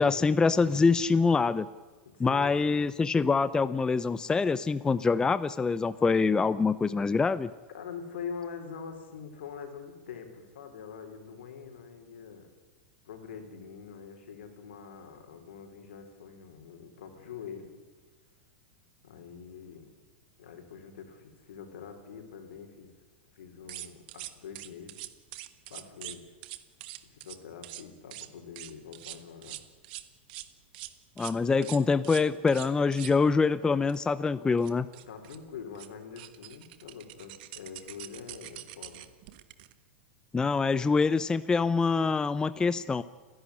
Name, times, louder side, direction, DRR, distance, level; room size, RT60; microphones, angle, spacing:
voice 1, 0.0-1.7 2.2-7.5 31.2-34.9 40.3-43.0, left 4 dB, 15° left, 15 dB, 0.6 m, -25 dB
voice 2, 2.1-2.9 7.7-12.5 13.0-17.7 19.0-19.9 20.4-22.9 23.3-25.0 25.7-26.3 27.1-29.6 35.1-39.1, left 6 dB, 80° left, 5 dB, 4.4 m, -44 dB
sound 1, 23.7-26.2 26.4-27.4 27.6-27.8 28.1-28.3 28.6-30.5 30.7-30.9 31.2-31.3 31.6-33.1 33.9-34.0 34.3-34.4 34.6-35.4 35.7-35.9 36.2-39.7, right 16 dB, 60° right, 1.5 m, -43 dB
30.0 x 11.5 x 10.0 m, 1.3 s
hypercardioid pair, 120°, 6 cm